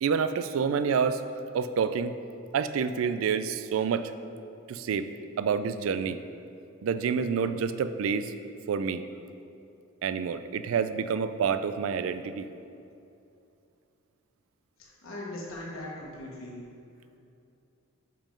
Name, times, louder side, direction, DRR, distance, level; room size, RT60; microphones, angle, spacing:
voice 1, 0.0-1.2 1.5-2.1 2.5-4.1 4.7-5.1 5.4-6.2 6.8-8.3 8.7-9.0 10.0-12.5, right 6 dB, 80° right, 11 dB, 0.3 m, -28 dB
voice 2, 14.8-16.6, left 1 dB, 80° left, -5 dB, 1.2 m, -40 dB
5.5 x 5.2 x 5.1 m, 2.6 s
head